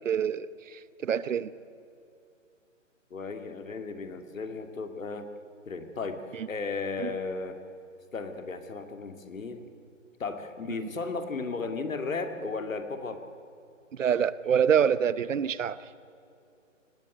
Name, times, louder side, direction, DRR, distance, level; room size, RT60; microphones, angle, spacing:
voice 1, 0.0-1.5 6.3-6.5 7.0-7.1 13.9-15.8, right 8 dB, 70° right, 17 dB, 1.0 m, -26 dB
voice 2, 3.1-5.3 5.7-6.2 6.5-7.6 8.1-9.7 10.2-13.2, left 4 dB, 85° left, 7 dB, 2.5 m, -35 dB
18.0 x 17.0 x 9.1 m, 2.6 s
hypercardioid pair, 170°, 39 cm